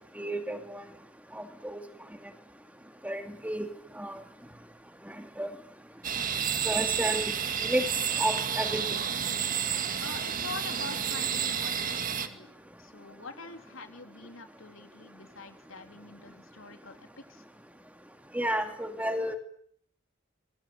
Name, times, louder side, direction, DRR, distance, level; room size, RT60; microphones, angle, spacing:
voice 1, 0.2-0.8 1.3-1.8 3.0-3.7 3.9-4.2 5.4-5.5 6.7-7.9 8.2-8.8 18.3-19.4, equal, 5° right, 6 dB, 2.5 m, -31 dB
sound 1, 6.0-12.3, right 8 dB, 40° right, 2.1 m, -30 dB
voice 2, 10.0-12.5 12.8-17.4, left 3 dB, 75° left, 6 dB, 3.7 m, -45 dB
26.5 x 23.5 x 8.9 m, 0.64 s
head